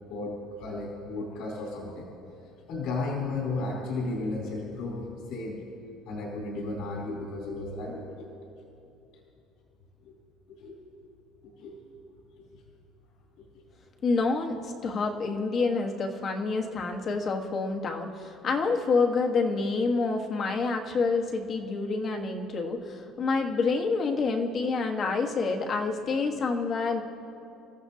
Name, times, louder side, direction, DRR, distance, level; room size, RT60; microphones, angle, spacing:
voice 1, 0.1-2.1 2.4-5.6 6.1-8.3 10.0-10.2 10.5-11.1 11.4-12.0 12.5-12.6, left 3 dB, 75° left, -4 dB, 3.6 m, -34 dB
voice 2, 14.0-27.0, left 4 dB, 35° left, 3 dB, 1.3 m, -28 dB
29.0 x 14.0 x 2.8 m, 2.7 s
cardioid pair, 150°, 0 cm